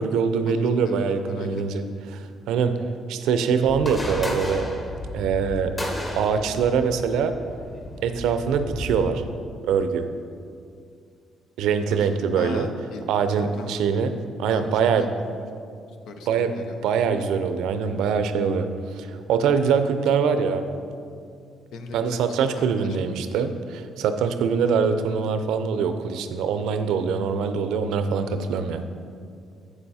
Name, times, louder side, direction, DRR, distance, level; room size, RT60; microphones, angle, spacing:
voice 1, 0.0-1.8 2.1-4.7 5.1-5.7 6.2-7.3 8.0-9.2 9.6-10.1 11.6-12.7 13.1-15.0 16.3-16.5 16.8-20.6 21.9-28.8, right 6 dB, 85° right, 9 dB, 0.5 m, -23 dB
voice 2, 1.2-1.6 11.8-13.0 13.3-14.0 14.5-15.7 16.1-16.8 21.7-23.1 24.6-24.8, left 3 dB, 80° left, 6 dB, 0.8 m, -40 dB
sound 1, 3.7-9.0, left 1 dB, 30° left, 1.7 m, -33 dB
8.1 x 6.9 x 4.2 m, 2.3 s
cardioid pair, 85°, 0 cm